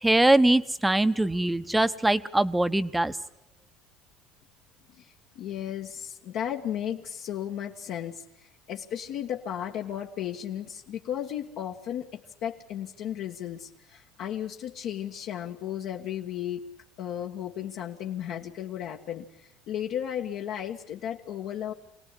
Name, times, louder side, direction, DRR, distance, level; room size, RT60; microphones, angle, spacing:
voice 1, 0.0-3.1, right 1 dB, 5° right, 12 dB, 1.0 m, -22 dB
voice 2, 4.9-16.6 17.0-21.7, left 10 dB, 60° left, 1 dB, 1.6 m, -35 dB
26.0 x 18.5 x 10.0 m, 0.75 s
supercardioid pair, 115°, 0 cm